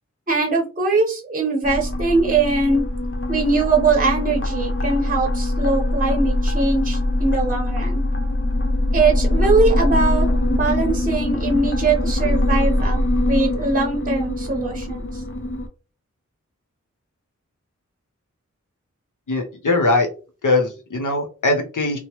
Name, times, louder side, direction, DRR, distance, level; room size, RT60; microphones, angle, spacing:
voice 1, 0.3-2.9 3.3-8.0 8.9-15.2, right 3 dB, 25° right, 1 dB, 0.7 m, -21 dB
sound 1, 1.6-15.7, left 1 dB, 45° left, 0.6 m, -22 dB
voice 2, 19.3-20.1 20.4-22.0, left 2 dB, 80° left, 3 dB, 0.8 m, -20 dB
2.9 x 2.0 x 2.9 m, 0.35 s
wide cardioid pair, 40°, 30 cm